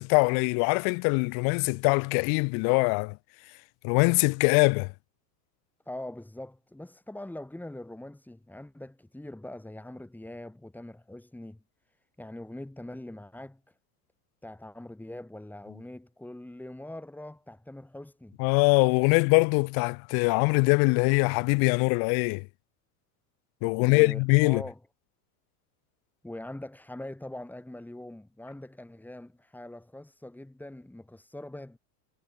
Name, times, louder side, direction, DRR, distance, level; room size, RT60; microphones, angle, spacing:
voice 1, 0.0-3.2 3.8-4.9 18.4-22.5 23.6-24.6, left 37 dB, 50° left, 0.5 m, -23 dB
voice 2, 5.9-11.6 12.2-13.7 14.4-18.4 23.8-24.8 26.2-31.8, left 1 dB, 5° left, 2.0 m, -42 dB
supercardioid pair, 115°, 47 cm